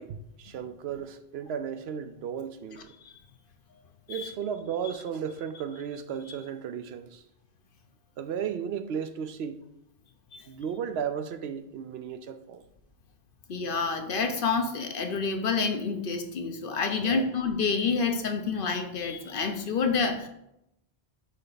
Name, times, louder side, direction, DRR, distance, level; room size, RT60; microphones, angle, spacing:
voice 1, 0.0-2.9 4.1-7.2 8.2-9.6 10.5-12.6 17.0-17.2, right 7 dB, 80° right, 0.8 m, -34 dB
voice 2, 13.5-20.3, left 5 dB, 60° left, 0.9 m, -28 dB
8.8 x 3.3 x 3.9 m
omnidirectional pair, 1.1 m